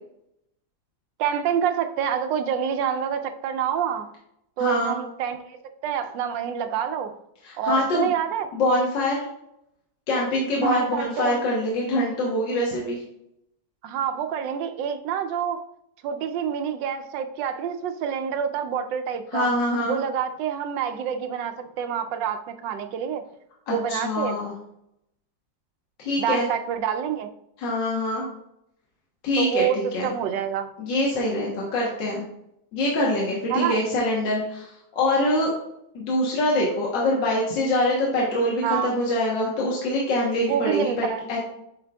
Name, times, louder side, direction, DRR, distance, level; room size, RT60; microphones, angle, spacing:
voice 1, 1.2-4.1 4.6-5.6 5.8-7.1 7.6-8.5 10.6-11.4 13.8-15.6 16.0-19.5 19.9-23.2 23.7-24.4 26.2-27.3 29.4-30.7 33.5-33.8 38.6-38.9 40.5-41.2, right 8 dB, 80° right, 7 dB, 1.2 m, -27 dB
voice 2, 4.6-4.9 7.4-8.1 8.5-9.2 10.1-13.0 19.3-20.0 23.7-24.5 26.0-26.5 27.6-28.2 29.2-30.1 30.8-32.2 32.7-35.5 36.0-41.4, left 1 dB, 75° left, -3 dB, 1.8 m, -24 dB
8.5 x 5.2 x 2.2 m, 0.79 s
omnidirectional pair, 2.0 m